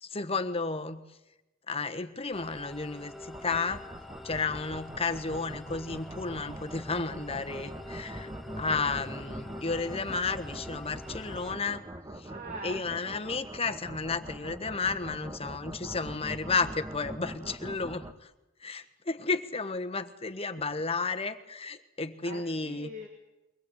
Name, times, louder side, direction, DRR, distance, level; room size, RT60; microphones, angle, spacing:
voice 1, 0.0-1.0 1.7-3.9 4.2-8.3 8.6-11.8 12.2-12.3 12.6-18.3 18.6-22.9, left 4 dB, 30° left, 8 dB, 1.3 m, -32 dB
sound 1, 2.3-11.5, left 1 dB, ahead, 1.3 m, -46 dB
sound 2, 3.3-18.1, right 1 dB, 20° right, 1.2 m, -43 dB
voice 2, 12.2-12.8 22.2-23.1, right 1 dB, 40° right, 2 dB, 2.5 m, -42 dB
23.5 x 19.5 x 8.2 m, 0.99 s
head